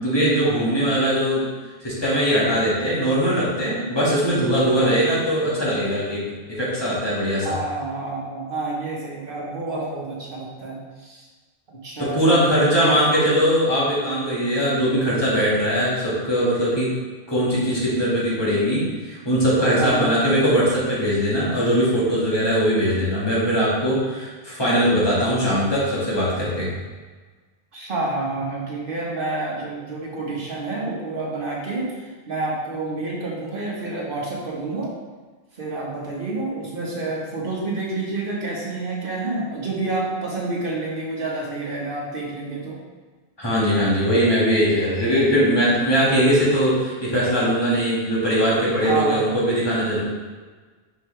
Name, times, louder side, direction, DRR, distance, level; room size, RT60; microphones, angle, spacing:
voice 1, 0.0-1.4 1.8-6.2 6.5-7.5 12.0-16.9 17.3-26.7 43.4-50.0, equal, 25° left, -8 dB, 1.9 m, -20 dB
voice 2, 7.4-11.2 11.7-13.1 19.8-20.1 27.7-34.9 35.5-42.8 48.8-49.4, right 3 dB, 55° right, -4 dB, 1.5 m, -29 dB
5.6 x 5.6 x 3.3 m, 1.4 s
omnidirectional pair, 1.1 m